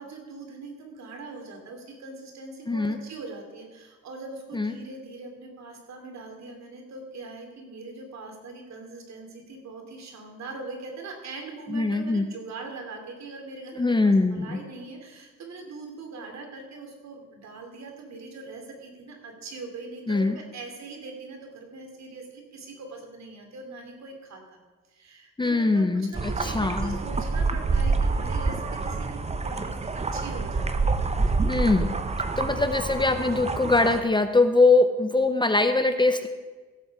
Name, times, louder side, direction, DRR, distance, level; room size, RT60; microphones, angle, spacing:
voice 1, 0.0-24.6 24.9-30.7 31.1-31.4, right 3 dB, 65° right, 3 dB, 2.9 m, -41 dB
voice 2, 2.7-3.0 4.5-4.7 11.7-12.2 13.8-14.6 20.1-20.4 25.4-27.0 31.5-31.9 32.4-36.3, left 3 dB, 15° left, 8 dB, 0.7 m, -22 dB
sound 1, 26.1-34.0, right 3 dB, 20° right, 0.8 m, -27 dB
16.0 x 7.7 x 4.8 m, 1.3 s
cardioid pair, 90°, 30 cm